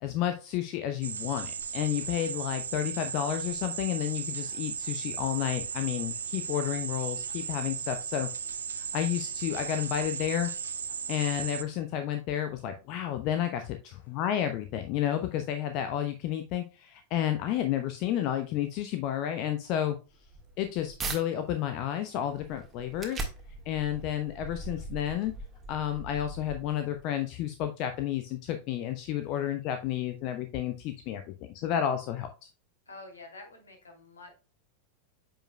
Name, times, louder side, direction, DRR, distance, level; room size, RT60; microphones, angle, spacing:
voice 1, 0.0-8.3 8.7-10.5 11.1-20.0 20.6-23.3 23.7-25.3 25.7-32.5, left 11 dB, 40° left, 8 dB, 0.7 m, -31 dB
sound 1, 1.0-11.6, right 7 dB, 70° right, 0.6 m, -36 dB
sound 2, 20.1-21.2 21.7-27.0, right 3 dB, 20° right, 1.6 m, -41 dB
voice 2, 32.9-34.4, left 2 dB, 75° left, 3 dB, 2.5 m, -48 dB
8.8 x 5.2 x 2.2 m, 0.32 s
figure-of-eight pair, 90°, 0 cm